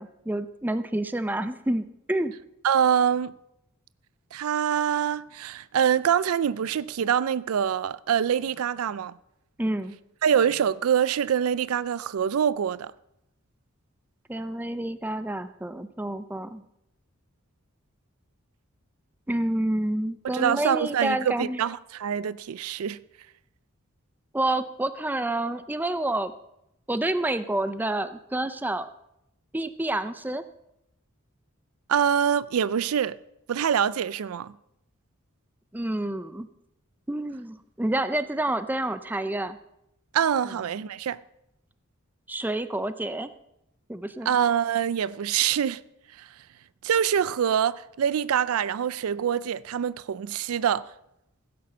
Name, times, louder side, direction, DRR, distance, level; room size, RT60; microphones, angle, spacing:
voice 1, 0.0-2.3 9.6-10.0 14.3-16.6 19.3-21.6 24.3-26.3 26.9-28.9 29.5-30.4 35.7-36.5 37.1-39.6 40.4-40.5 42.3-43.3 43.9-44.3, right 1 dB, 10° right, 0.5 m, -28 dB
voice 2, 2.6-3.3 4.3-9.1 10.2-12.9 20.2-23.0 31.9-33.2 33.5-34.5 40.1-41.2 44.3-45.8 46.2-46.3 46.8-50.9, right 8 dB, 85° right, 0.4 m, -25 dB
16.0 x 7.7 x 5.5 m
head